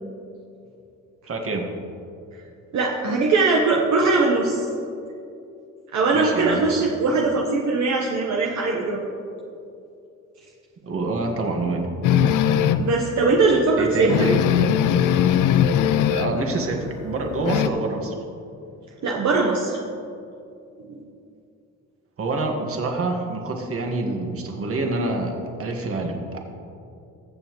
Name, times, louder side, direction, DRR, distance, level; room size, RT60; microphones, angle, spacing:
voice 1, 1.3-1.7 6.1-6.7 10.8-11.9 13.8-14.4 16.1-18.1 22.2-26.4, right 2 dB, 50° right, 2 dB, 1.8 m, -26 dB
voice 2, 2.7-4.7 5.9-9.1 12.8-14.3 19.0-19.8 20.8-21.0, right 3 dB, 70° right, -1 dB, 1.2 m, -21 dB
sound 1, 12.0-13.0 13.4-13.5 13.8-13.9 14.1-16.4 16.7-17.7, left 9 dB, 85° left, 0.5 m, -20 dB
21.5 x 7.3 x 3.2 m, 2.6 s
cardioid pair, 90°, 30 cm